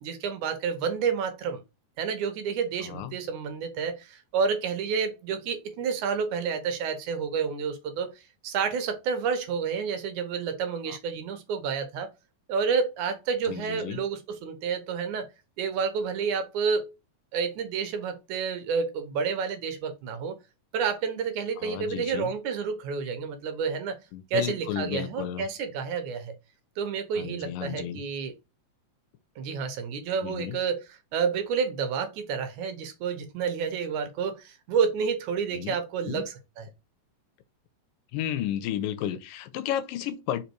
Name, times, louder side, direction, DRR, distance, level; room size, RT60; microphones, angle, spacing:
voice 1, 0.0-1.6 2.0-12.1 12.5-15.3 15.6-16.9 17.3-20.4 20.7-24.0 24.3-26.3 26.8-28.3 29.4-30.8 31.1-36.7, right 6 dB, 70° right, 2.4 m, -29 dB
voice 2, 2.8-3.2 10.9-11.0 13.4-14.0 21.6-22.3 24.1-25.5 27.2-28.0 30.2-30.6 35.5-35.8 36.1-36.2 38.1-40.4, left 10 dB, 85° left, 2.5 m, -33 dB
5.2 x 4.1 x 4.6 m
omnidirectional pair, 3.8 m